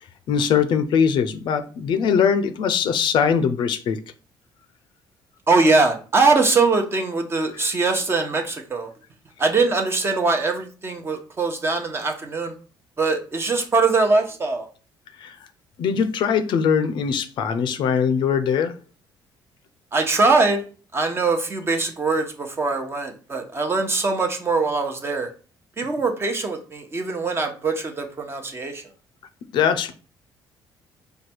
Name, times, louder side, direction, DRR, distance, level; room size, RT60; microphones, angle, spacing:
voice 1, 0.3-4.0 7.6-7.7 15.2-15.3 15.8-18.7 29.5-29.9, left 7 dB, 65° left, 0.5 m, -21 dB
voice 2, 5.5-8.9 9.4-12.5 13.0-14.7 19.9-20.6 20.9-25.3 25.8-28.8, right 3 dB, 30° right, 0.9 m, -22 dB
4.8 x 2.3 x 4.3 m
cardioid pair, 110°, 9 cm